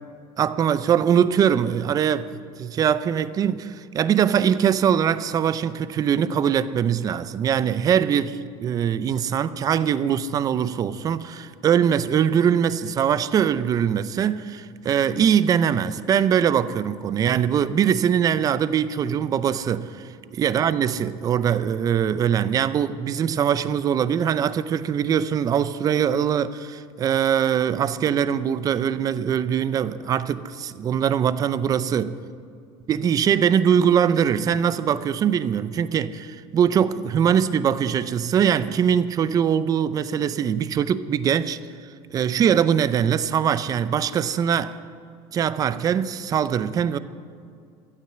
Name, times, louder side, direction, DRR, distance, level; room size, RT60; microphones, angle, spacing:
voice 1, 0.4-20.0 20.3-32.1 32.9-41.6 42.1-44.8 45.3-47.0, right 8 dB, 30° right, 0.5 m, -22 dB
14.0 x 9.3 x 7.9 m
cardioid pair, 145°, 13 cm